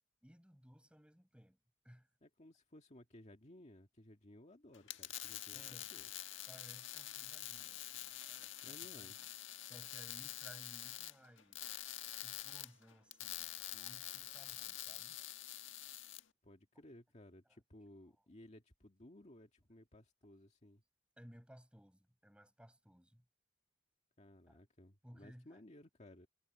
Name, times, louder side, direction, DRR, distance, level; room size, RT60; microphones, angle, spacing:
voice 1, 0.2-1.6 1.8-2.1 5.5-5.9 6.5-9.3 9.6-11.6 12.2-15.2 21.2-23.3 24.5-24.6 25.0-25.6, equal, 5° right, 5.7 m, -60 dB
voice 2, 2.2-6.1 8.6-9.2 16.4-20.8 24.2-26.3, left 1 dB, 35° left, 1.9 m, -59 dB
sound 1, 4.7-16.2, left 13 dB, 90° left, 1.5 m, -47 dB
head